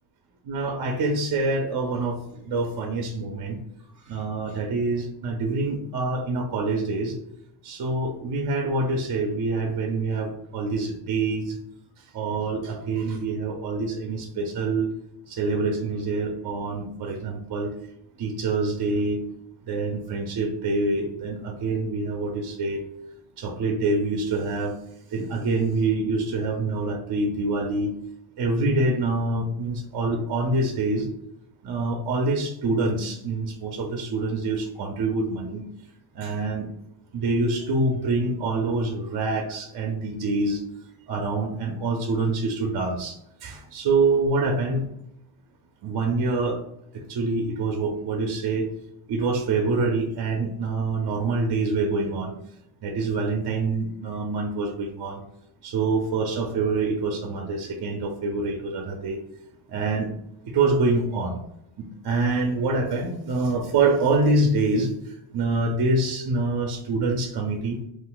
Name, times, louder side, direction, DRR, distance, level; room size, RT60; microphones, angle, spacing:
voice 1, 0.5-3.6 4.1-7.1 7.6-11.6 12.1-14.9 15.3-17.7 18.2-19.2 19.7-22.8 23.4-24.7 25.1-27.9 28.4-31.1 31.6-35.6 36.2-36.7 37.1-40.6 41.1-43.2 43.4-44.9 45.8-46.6 47.1-48.7 49.1-52.3 52.8-55.2 55.6-59.2 59.7-60.1 60.4-61.4 61.8-64.9 65.3-67.8, right 3 dB, 55° right, 3 dB, 0.6 m, -25 dB
2.5 x 2.2 x 3.7 m, 0.77 s
cardioid pair, 95°, 49 cm